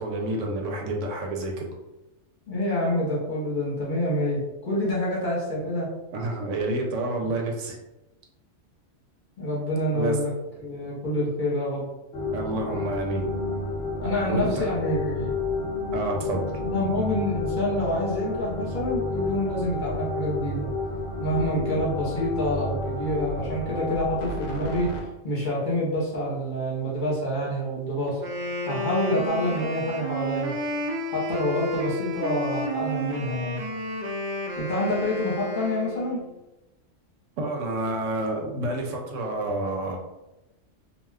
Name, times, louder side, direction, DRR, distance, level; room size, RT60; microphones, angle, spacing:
voice 1, 0.0-1.7 6.1-7.8 9.9-10.2 12.3-13.3 14.3-14.7 15.9-16.6 37.4-40.0, right 2 dB, 85° right, 1 dB, 1.0 m, -29 dB
voice 2, 2.5-5.9 9.4-10.3 10.6-11.9 14.0-15.3 16.6-20.7 21.2-28.2 28.6-30.6 31.1-33.6 34.6-36.2 38.4-38.5, left 1 dB, 45° left, -6 dB, 1.0 m, -27 dB
sound 1, 12.1-25.0, left 2 dB, 65° left, 0.8 m, -31 dB
Wind instrument woodwind instrument, 28.1-36.2, equal, 65° right, 0.4 m, -31 dB
2.4 x 2.2 x 3.3 m, 0.97 s
omnidirectional pair, 1.3 m